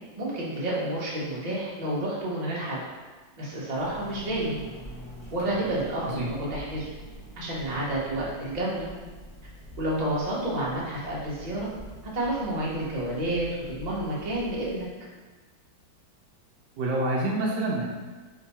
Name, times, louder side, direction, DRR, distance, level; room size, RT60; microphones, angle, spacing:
voice 1, 0.2-2.8 3.4-4.6 5.3-6.9 7.4-8.9 9.8-11.7 12.1-14.9, right 1 dB, 35° right, -6 dB, 0.7 m, -30 dB
sound 1, 3.7-14.8, right 1 dB, 35° left, 0.5 m, -45 dB
voice 2, 16.8-17.8, right 2 dB, 70° right, -2 dB, 1.2 m, -27 dB
3.7 x 2.7 x 4.1 m, 1.3 s
omnidirectional pair, 2.1 m